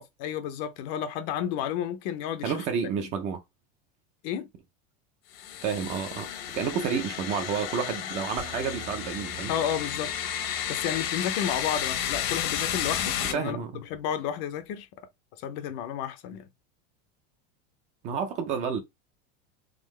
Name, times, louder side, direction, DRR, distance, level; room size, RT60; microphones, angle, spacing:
voice 1, 0.0-2.6 4.2-4.5 9.5-10.1 10.7-14.9 15.4-16.5, left 9 dB, 40° left, 0.5 m, -32 dB
voice 2, 2.4-3.4 5.6-9.5 13.3-13.8 18.0-18.8, right 6 dB, 25° right, 0.4 m, -30 dB
sound 1, 5.3-13.3, left 10 dB, 70° left, 1.1 m, -32 dB
sound 2, 8.4-12.7, right 9 dB, 75° right, 0.7 m, -48 dB
3.8 x 3.5 x 3.1 m
supercardioid pair, 175°, 31 cm